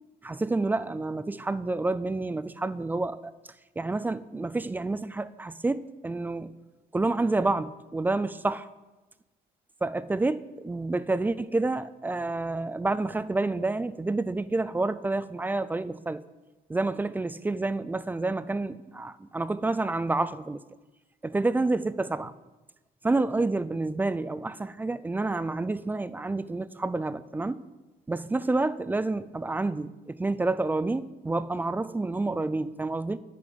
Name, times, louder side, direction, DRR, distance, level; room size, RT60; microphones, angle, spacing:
voice 1, 0.2-3.3 3.8-6.5 6.9-8.7 9.8-16.2 16.7-20.6 21.2-22.3 23.0-27.6 28.1-33.2, right 2 dB, 10° right, 0.3 m, -29 dB
10.0 x 7.2 x 5.0 m
cardioid pair, 110°, 17 cm